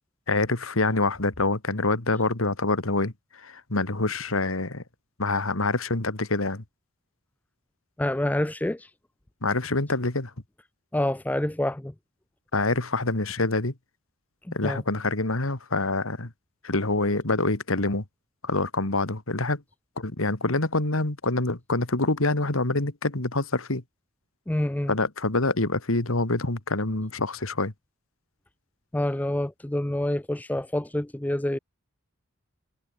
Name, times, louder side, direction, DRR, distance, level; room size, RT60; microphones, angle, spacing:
voice 1, 0.3-4.8 5.2-6.6 9.4-10.3 12.5-13.7 14.5-16.3 16.6-18.0 18.4-19.6 20.0-23.8 24.9-27.7, left 2 dB, 85° left, 2.3 m, -26 dB
voice 2, 8.0-8.9 10.9-11.9 14.5-14.8 24.5-24.9 28.9-31.6, left 1 dB, 10° left, 0.4 m, -27 dB
head